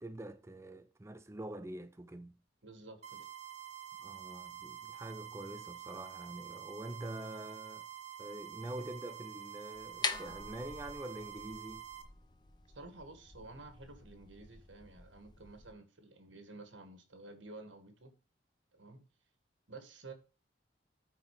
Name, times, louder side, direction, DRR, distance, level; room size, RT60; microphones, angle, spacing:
voice 1, 0.0-2.4 4.0-7.9 8.2-11.9, right 1 dB, 15° right, 0.5 m, -45 dB
voice 2, 2.6-3.3 12.7-18.2 18.7-19.0 19.7-20.1, right 2 dB, 80° right, 2.0 m, -52 dB
sound 1, 3.0-12.0, right 10 dB, 40° right, 1.4 m, -48 dB
sound 2, 9.7-15.7, left 4 dB, 25° left, 0.7 m, -44 dB
9.2 x 4.4 x 5.0 m
head